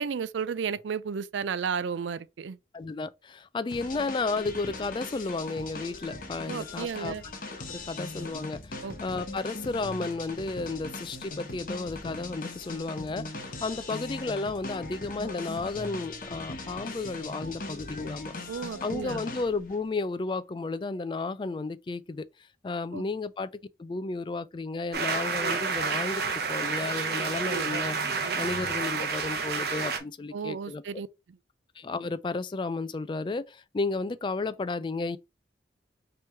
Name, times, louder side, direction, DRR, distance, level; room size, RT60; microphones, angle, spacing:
voice 1, 0.0-2.6 6.5-7.2 8.8-8.9 18.5-19.2 22.9-23.0 30.3-31.1, right 6 dB, 85° right, 0.4 m, -33 dB
voice 2, 2.7-7.1 7.5-18.3 18.8-22.3 22.6-23.5 23.8-30.8 31.8-35.2, left 3 dB, 25° left, 0.3 m, -33 dB
sound 1, 3.7-19.8, left 2 dB, 50° left, 1.0 m, -40 dB
Orchestra Pit Perspective End Applause, 24.9-30.0, right 5 dB, 60° right, 1.0 m, -29 dB
4.4 x 3.1 x 3.4 m
head